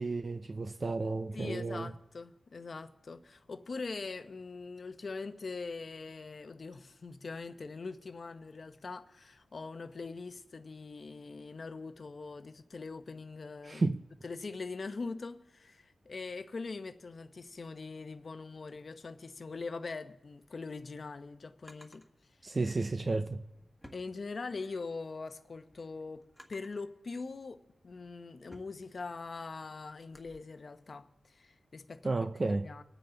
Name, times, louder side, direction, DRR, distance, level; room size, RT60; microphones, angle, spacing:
voice 1, 0.0-1.9 13.7-14.0 22.4-23.4 32.0-32.7, right 3 dB, 40° right, 0.6 m, -32 dB
voice 2, 1.3-13.9 14.2-22.0 22.4-22.5 23.9-26.2 26.5-32.1 32.5-32.8, left 4 dB, 55° left, 0.9 m, -42 dB
Drawer open or close, 20.6-22.1 23.1-24.8 25.2-26.9 27.5-30.4, equal, ahead, 1.8 m, -59 dB
26.0 x 9.1 x 3.9 m
wide cardioid pair, 75°, 0 cm